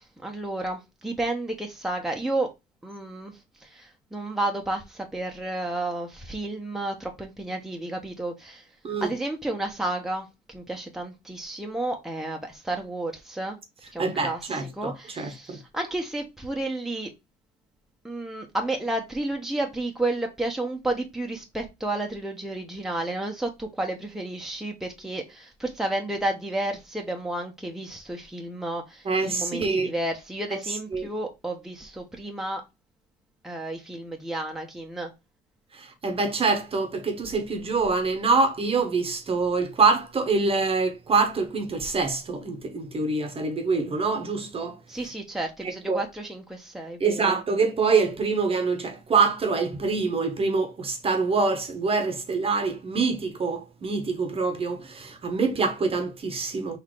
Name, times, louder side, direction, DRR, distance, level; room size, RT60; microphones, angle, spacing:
voice 1, 0.0-2.5 2.8-8.7 9.0-13.6 13.9-17.1 18.0-32.6 33.4-35.1 44.9-47.4, right 2 dB, ahead, 1.0 m, -31 dB
voice 2, 14.0-15.6 29.0-29.9 30.9-31.0 35.7-44.8 45.9-46.0 47.0-56.8, right 4 dB, 35° right, 1.1 m, -25 dB
4.0 x 2.8 x 4.8 m
cardioid pair, 110°, 17 cm